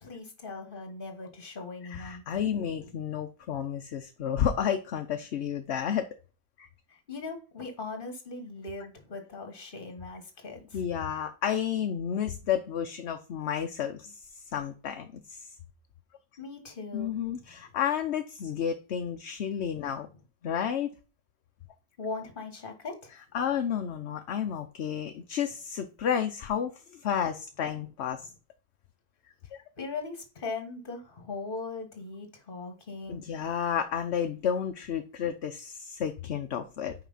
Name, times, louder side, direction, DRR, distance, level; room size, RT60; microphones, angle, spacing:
voice 1, 0.0-2.2 3.0-3.1 6.9-10.8 16.4-17.1 17.5-17.6 22.0-23.1 29.8-33.2, left 3 dB, 45° left, 5 dB, 1.7 m, -39 dB
voice 2, 1.9-6.1 6.6-6.7 10.7-14.2 14.5-15.4 16.9-20.1 20.4-20.9 23.3-28.2 29.5-29.6 33.1-36.9, left 8 dB, 60° left, 6 dB, 1.0 m, -31 dB
5.8 x 5.1 x 5.6 m, 0.34 s
omnidirectional pair, 1.3 m